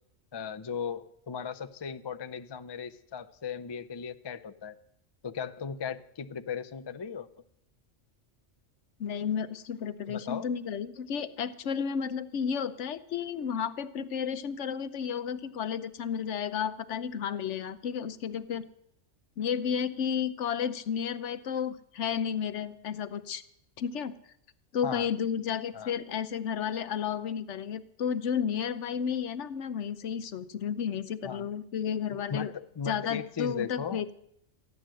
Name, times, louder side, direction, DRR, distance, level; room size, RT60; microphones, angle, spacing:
voice 1, 0.3-4.8 5.2-7.3 10.1-10.5 24.8-25.1 25.7-25.9 31.2-31.5 32.3-34.1, left 6 dB, 35° left, 9 dB, 0.4 m, -37 dB
voice 2, 9.0-18.6 19.4-23.4 23.8-24.2 24.7-32.5 32.9-34.1, left 7 dB, 75° left, 13 dB, 1.1 m, -32 dB
14.5 x 11.0 x 7.6 m, 0.73 s
omnidirectional pair, 1.2 m